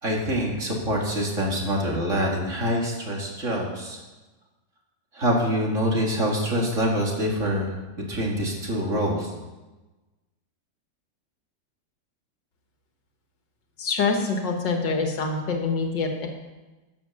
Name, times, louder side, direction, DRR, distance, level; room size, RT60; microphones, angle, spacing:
voice 1, 0.0-4.0 5.1-7.7 8.1-9.3, equal, 45° right, -1 dB, 2.5 m, -25 dB
voice 2, 13.8-16.3, left 4 dB, 85° left, 3 dB, 2.2 m, -25 dB
11.0 x 7.9 x 7.1 m, 1.1 s
omnidirectional pair, 1.9 m